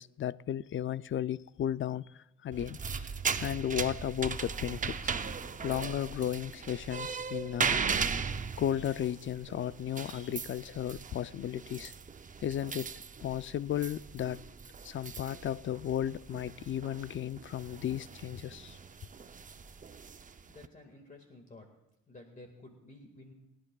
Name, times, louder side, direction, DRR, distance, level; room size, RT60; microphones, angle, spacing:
voice 1, 0.0-3.1 3.4-5.1 5.6-7.8 8.6-11.9 12.4-12.9 13.2-14.4 14.8-18.8, left 10 dB, 40° left, 0.4 m, -34 dB
sound 1, 2.5-20.7, right 5 dB, 25° right, 0.6 m, -38 dB
voice 2, 20.5-21.7 22.1-23.3, left 2 dB, 25° left, 1.9 m, -52 dB
29.0 x 11.5 x 2.3 m
cardioid pair, 90°, 30 cm